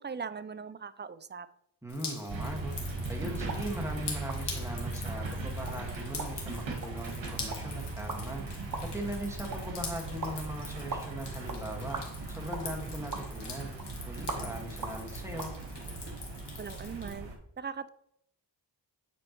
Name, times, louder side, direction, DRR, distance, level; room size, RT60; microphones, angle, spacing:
voice 1, 0.0-1.5 16.6-17.3 17.6-17.9, right 6 dB, 25° right, 14 dB, 0.4 m, -40 dB
voice 2, 1.8-8.5 8.8-13.8 14.1-15.5, right 1 dB, 5° right, 1 dB, 1.6 m, -40 dB
Drip, 1.9-17.1, left 4 dB, 65° left, 1.8 m, -45 dB
sound 1, 2.3-17.3, right 2 dB, 90° right, 1.1 m, -39 dB
sound 2, 3.4-15.5, right 3 dB, 45° right, 1.2 m, -44 dB
8.5 x 4.4 x 3.0 m, 0.75 s
cardioid pair, 45°, 44 cm